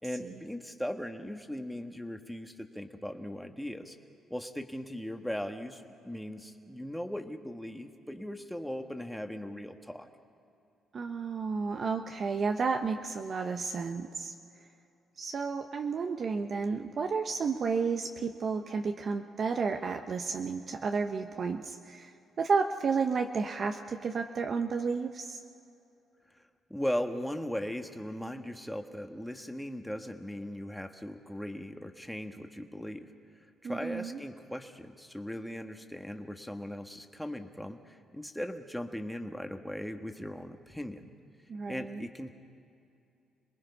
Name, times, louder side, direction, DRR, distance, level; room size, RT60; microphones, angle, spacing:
voice 1, 0.0-3.9 4.3-10.1 26.7-33.0 33.6-41.1 41.7-42.3, equal, 5° left, 5 dB, 1.4 m, -38 dB
voice 2, 10.9-14.3 15.2-22.1 22.4-25.4 33.6-34.2 41.5-42.1, right 5 dB, 50° right, 5 dB, 0.9 m, -32 dB
27.0 x 20.0 x 5.5 m, 2.7 s
cardioid pair, 90°, 0 cm